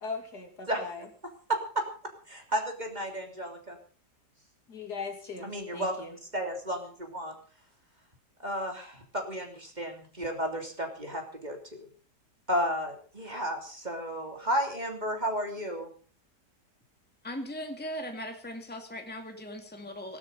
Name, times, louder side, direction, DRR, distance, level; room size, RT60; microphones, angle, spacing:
voice 1, 0.0-1.0 4.7-6.1, left 4 dB, 65° left, 4 dB, 3.3 m, -39 dB
voice 2, 1.5-2.1 2.5-3.8 5.4-7.3 8.4-11.9 12.5-15.9, equal, 25° right, 3 dB, 3.3 m, -33 dB
voice 3, 17.2-20.2, equal, 5° left, 4 dB, 2.2 m, -39 dB
18.0 x 12.5 x 5.3 m, 0.41 s
omnidirectional pair, 1.8 m